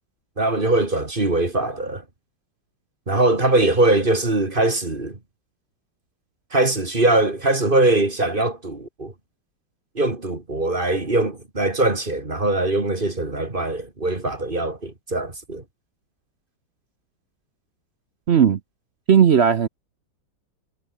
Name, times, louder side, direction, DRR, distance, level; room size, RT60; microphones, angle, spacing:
voice 1, 0.4-2.0 3.1-5.2 6.5-9.1 9.9-15.6, right 2 dB, 25° right, 2.8 m, -21 dB
voice 2, 18.3-18.6 19.1-19.7, right 7 dB, 55° right, 0.7 m, -15 dB
omnidirectional pair, 2.1 m